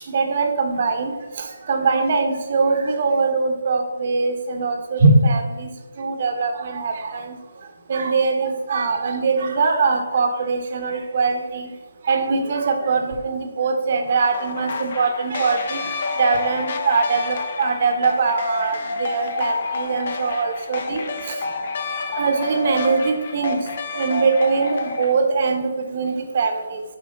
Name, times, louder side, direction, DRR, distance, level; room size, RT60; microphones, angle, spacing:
voice 1, 0.1-5.7 6.0-7.4 7.9-11.7 12.0-21.4 22.2-23.6 23.9-26.8, right 4 dB, 50° right, 4 dB, 1.1 m, -22 dB
sound 1, 14.3-25.1, left 3 dB, 50° left, 0.8 m, -29 dB
6.6 x 4.8 x 3.9 m, 1.2 s
figure-of-eight pair, 150°, 0 cm